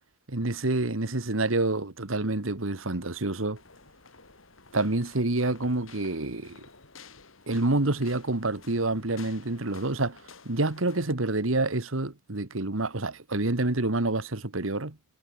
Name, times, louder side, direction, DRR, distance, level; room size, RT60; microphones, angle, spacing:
voice 1, 0.3-3.6 4.7-6.6 7.5-10.2 10.5-15.0, right 2 dB, 85° right, 1.9 m, -27 dB
sound 1, 3.6-11.1, left 4 dB, 80° left, 5.7 m, -52 dB
head